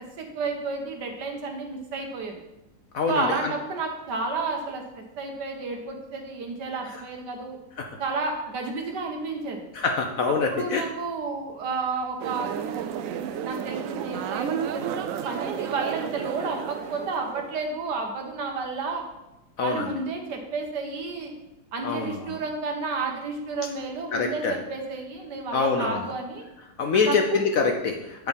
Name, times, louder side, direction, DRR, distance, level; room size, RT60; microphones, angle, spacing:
voice 1, 0.0-2.4 3.1-7.6 8.0-9.6 10.5-12.6 13.4-19.0 19.6-21.3 21.7-26.5 26.9-27.4, right 3 dB, 65° right, 3 dB, 1.7 m, -31 dB
voice 2, 2.9-3.5 9.7-10.8 19.6-19.9 21.8-22.2 24.1-24.5 25.5-26.0 26.8-28.3, left 4 dB, 60° left, 3 dB, 0.9 m, -25 dB
sound 1, 12.2-17.6, right 8 dB, 80° right, 0.7 m, -32 dB
8.8 x 4.7 x 5.3 m, 0.93 s
omnidirectional pair, 2.0 m